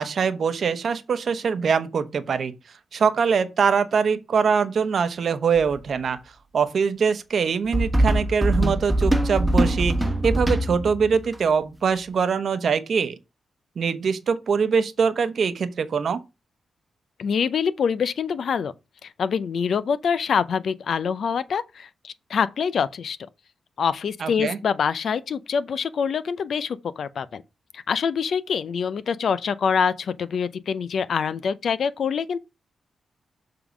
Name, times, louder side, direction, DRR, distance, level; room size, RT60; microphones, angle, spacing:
voice 1, 0.0-2.5 2.9-6.2 6.5-9.9 10.2-13.2 13.8-16.2 24.2-24.6, right 6 dB, 65° right, 0.8 m, -23 dB
sound 1, 5.6-5.8 7.7-11.4, right 1 dB, 10° right, 1.1 m, -22 dB
voice 2, 17.2-18.7 19.0-23.2 23.8-27.4 27.7-32.4, left 6 dB, 70° left, 0.6 m, -25 dB
6.9 x 3.8 x 5.0 m
cardioid pair, 65°, 0 cm